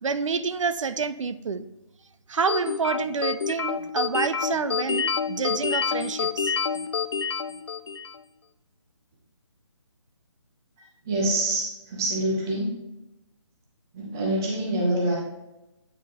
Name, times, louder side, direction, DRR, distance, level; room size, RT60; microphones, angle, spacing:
voice 1, 0.0-1.7 2.3-6.6, right 5 dB, 85° right, 12 dB, 0.6 m, -28 dB
sound 1, 2.5-8.2, left 6 dB, 60° left, 0.4 m, -27 dB
voice 2, 11.0-12.7 13.9-15.2, right 1 dB, 5° right, -3 dB, 0.4 m, -25 dB
8.3 x 4.6 x 3.6 m, 0.94 s
hypercardioid pair, 170°, 16 cm